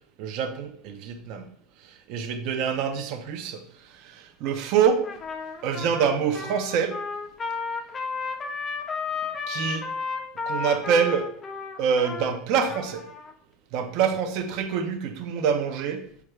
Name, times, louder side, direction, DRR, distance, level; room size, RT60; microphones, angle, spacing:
voice 1, 0.2-1.5 2.1-3.6 4.0-5.1 5.6-7.0 9.5-9.9 10.5-11.3 11.8-13.0 13.7-16.0, right 7 dB, 50° right, 7 dB, 0.4 m, -25 dB
Trumpet, 5.0-13.3, left 5 dB, 15° left, 0.4 m, -33 dB
4.6 x 2.2 x 3.1 m, 0.68 s
supercardioid pair, 155°, 0 cm